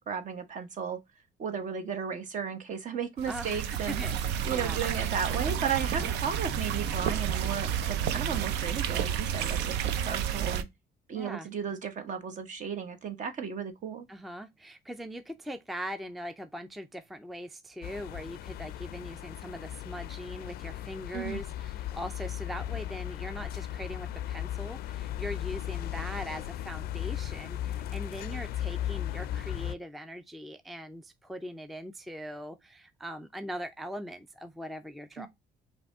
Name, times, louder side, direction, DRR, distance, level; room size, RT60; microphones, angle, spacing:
voice 1, 0.1-1.0 1.4-4.0 4.4-10.7 11.1-14.1 21.1-21.4 35.2-35.3, right 7 dB, 50° right, 1.0 m, -34 dB
sound 1, 3.2-10.6, right 9 dB, 85° right, 0.5 m, -30 dB
voice 2, 3.3-4.8 5.9-6.1 11.1-11.5 14.1-35.3, equal, ahead, 0.4 m, -41 dB
sound 2, 17.8-29.8, left 12 dB, 65° left, 0.4 m, -36 dB
5.0 x 2.8 x 3.5 m
cardioid pair, 110°, 17 cm